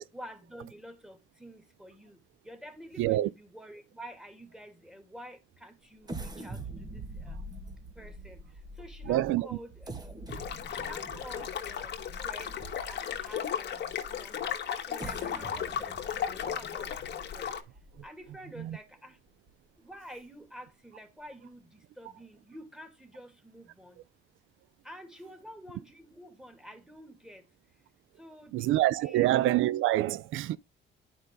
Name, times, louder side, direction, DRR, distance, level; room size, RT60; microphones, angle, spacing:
voice 1, 0.1-2.2 2.4-7.4 8.0-8.4 8.8-10.3 10.7-12.6 12.9-14.5 14.8-17.5 18.0-19.2 19.8-24.0 24.8-27.5 28.2-28.7 29.0-29.3, equal, 5° right, 2.5 m, -49 dB
voice 2, 3.0-3.3 7.3-7.4 9.0-9.6 18.6-18.8 28.5-30.6, right 15 dB, 85° right, 0.4 m, -26 dB
sound 1, 6.0-13.2 13.8-13.9 14.7-18.3 18.7-18.8 19.3-19.5, right 1 dB, 20° right, 1.8 m, -44 dB
sound 2, 10.3-17.6, left 8 dB, 60° left, 1.5 m, -35 dB
9.9 x 5.3 x 3.7 m
cardioid pair, 90°, 20 cm